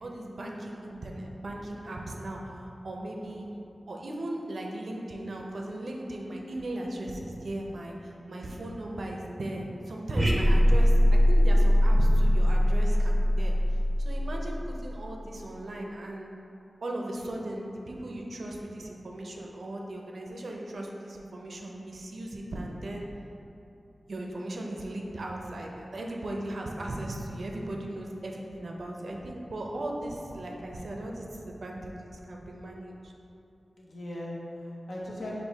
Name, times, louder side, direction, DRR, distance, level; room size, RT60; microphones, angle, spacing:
voice 1, 0.0-3.5 3.9-13.5 14.0-16.3 16.8-23.1 24.1-33.1, right 1 dB, 75° right, 0 dB, 0.5 m, -37 dB
voice 2, 3.0-3.4 14.2-14.6 33.8-35.4, left 1 dB, 80° left, -4 dB, 0.8 m, -40 dB
sound 1, 10.2-14.8, equal, 15° right, 0.5 m, -21 dB
6.1 x 2.5 x 3.4 m, 2.8 s
wide cardioid pair, 80°, 0 cm